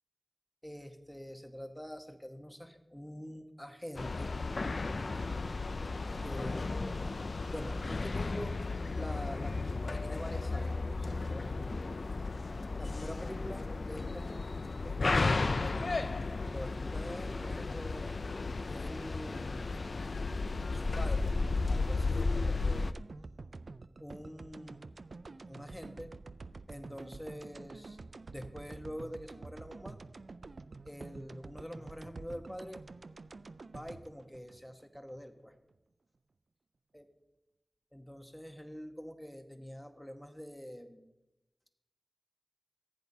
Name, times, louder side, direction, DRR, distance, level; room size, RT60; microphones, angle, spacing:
voice 1, 0.6-4.3 6.2-7.1 7.5-8.6 8.9-9.6 9.8-11.9 12.8-14.5 14.8-16.0 16.4-18.0 18.7-19.7 20.7-21.3 21.7-23.0 24.0-24.8 25.5-26.2 26.7-28.0 28.3-30.0 30.8-32.8 33.3-35.5 36.9-37.0 37.9-41.0, equal, 5° left, 5 dB, 1.1 m, -45 dB
sound 1, 4.0-22.9, left 3 dB, 75° left, 0.3 m, -34 dB
sound 2, 22.9-35.2 35.5-35.6, right 3 dB, 85° right, 0.3 m, -49 dB
15.0 x 8.2 x 2.7 m, 0.93 s
wide cardioid pair, 55°, 0 cm